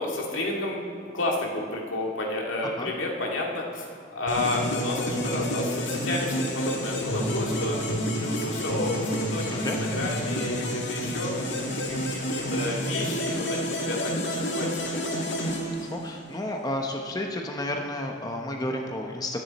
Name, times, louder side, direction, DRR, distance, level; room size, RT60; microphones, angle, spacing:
voice 1, 0.0-11.4 11.9-15.0, left 2 dB, 85° left, -1 dB, 2.4 m, -31 dB
sound 1, 4.3-16.3, equal, 65° left, 2.0 m, -29 dB
voice 2, 15.7-19.4, left 1 dB, 20° left, 1 dB, 1.0 m, -31 dB
22.0 x 9.8 x 4.3 m, 2.2 s
head